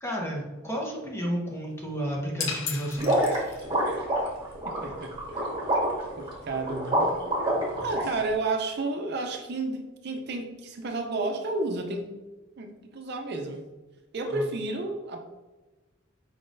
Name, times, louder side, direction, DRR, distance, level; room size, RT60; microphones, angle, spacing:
voice 1, 0.0-3.4 14.3-14.4, equal, 15° left, -2 dB, 0.9 m, -32 dB
sound 1, 2.4-3.9, left 6 dB, 65° left, 0.6 m, -35 dB
sound 2, 3.0-8.0, right 1 dB, 20° right, 1.4 m, -26 dB
voice 2, 4.6-5.5 6.2-7.1 7.8-12.1 12.6-13.6 14.1-15.2, right 2 dB, 55° right, 4 dB, 0.5 m, -31 dB
4.9 x 3.8 x 2.6 m, 1.1 s
head